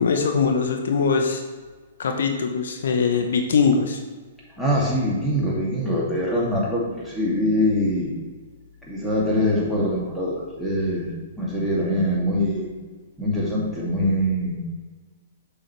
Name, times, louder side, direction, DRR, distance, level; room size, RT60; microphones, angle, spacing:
voice 1, 0.0-1.4 2.0-4.0, left 5 dB, 65° left, 5 dB, 0.8 m, -21 dB
voice 2, 4.6-8.1 8.9-11.1 11.4-12.7 13.2-14.6, equal, ahead, -6 dB, 2.4 m, -23 dB
7.4 x 6.7 x 3.3 m, 1.4 s
figure-of-eight pair, 110°, 0 cm